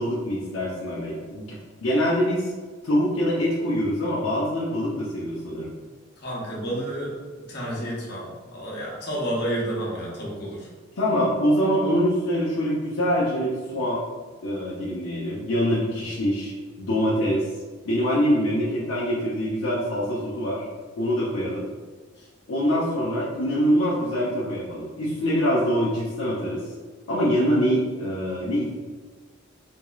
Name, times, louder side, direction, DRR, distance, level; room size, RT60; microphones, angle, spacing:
voice 1, 0.0-1.5 1.8-2.5 2.8-5.7 11.0-14.0 14.4-16.5 16.8-17.5 17.8-20.7 21.0-21.7 22.5-26.6 27.1-28.7, equal, 85° left, -8 dB, 0.6 m, -24 dB
voice 2, 6.2-7.2 7.5-10.7 22.2-22.3, right 1 dB, 55° left, -5 dB, 0.9 m, -30 dB
3.4 x 3.0 x 2.3 m, 1.4 s
head